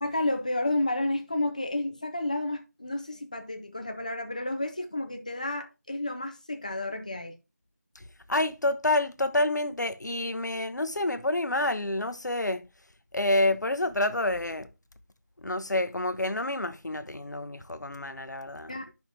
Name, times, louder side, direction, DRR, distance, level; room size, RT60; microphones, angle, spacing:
voice 1, 0.0-7.3 18.7-18.9, left 2 dB, 25° left, 0.7 m, -31 dB
voice 2, 8.3-12.6 13.1-14.7 15.4-18.7, left 1 dB, 85° left, 0.9 m, -28 dB
9.2 x 5.8 x 2.8 m
figure-of-eight pair, 175°, 9 cm